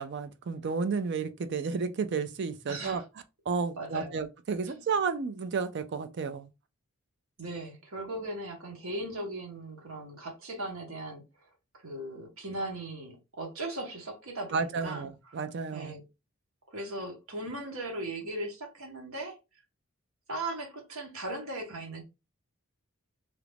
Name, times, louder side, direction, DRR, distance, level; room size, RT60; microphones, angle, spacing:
voice 1, 0.0-3.0 3.5-6.5 14.5-16.0, right 5 dB, 50° right, 0.4 m, -32 dB
voice 2, 2.7-3.0 3.8-4.2 4.7-4.8 7.4-11.2 11.7-15.4 15.7-16.0 16.7-19.4 20.3-22.0, right 1 dB, 70° right, 1.1 m, -38 dB
2.9 x 2.4 x 3.3 m
head